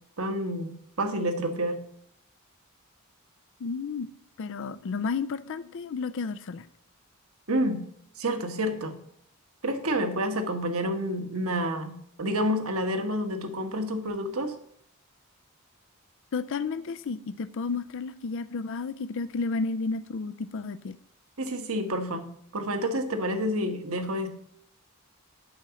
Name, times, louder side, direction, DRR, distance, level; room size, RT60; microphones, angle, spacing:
voice 1, 0.2-1.8 7.5-7.8 8.2-9.0 9.6-14.5 21.4-22.2 22.5-24.3, equal, 70° right, 6 dB, 1.4 m, -29 dB
voice 2, 3.6-6.7 16.3-21.0, left 4 dB, 60° left, 13 dB, 0.4 m, -32 dB
8.6 x 6.1 x 7.0 m, 0.67 s
head